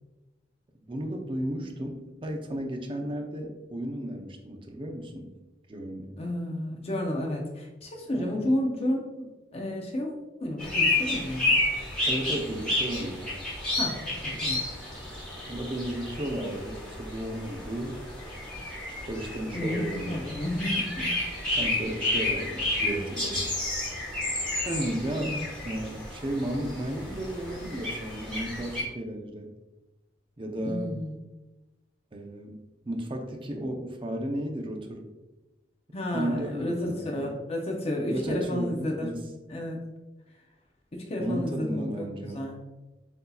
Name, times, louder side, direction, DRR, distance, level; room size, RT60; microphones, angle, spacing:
voice 1, 0.8-5.3 5.7-6.1 8.1-8.5 12.1-13.3 15.5-18.0 19.1-20.2 21.5-23.5 24.6-29.5 30.4-31.0 32.1-32.6 32.9-35.0 36.1-37.3 38.1-39.2 41.2-42.4, right 1 dB, 30° right, 3 dB, 0.6 m, -34 dB
voice 2, 6.2-10.1 10.4-11.6 13.8-14.6 19.5-21.1 25.2-25.4 30.6-31.1 35.9-39.1 39.5-39.8 40.9-42.6, left 1 dB, 35° left, 0 dB, 0.6 m, -31 dB
sound 1, 10.6-28.8, left 2 dB, 5° left, 1.2 m, -31 dB
7.9 x 2.7 x 2.3 m, 1.1 s
head